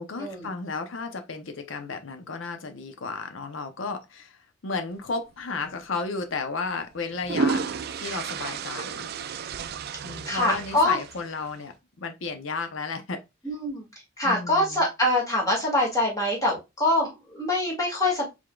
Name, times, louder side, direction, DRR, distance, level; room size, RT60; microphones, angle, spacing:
voice 1, 0.0-4.4 4.6-7.6 8.0-9.1 10.0-13.2 14.2-14.9, left 4 dB, 75° left, 0.7 m, -33 dB
sound 1, 5.6-5.8 6.9-11.5, right 5 dB, 50° right, 0.4 m, -32 dB
voice 2, 10.3-11.0 13.4-13.8 14.2-18.3, left 1 dB, 15° left, 1.9 m, -24 dB
4.8 x 3.6 x 2.3 m
head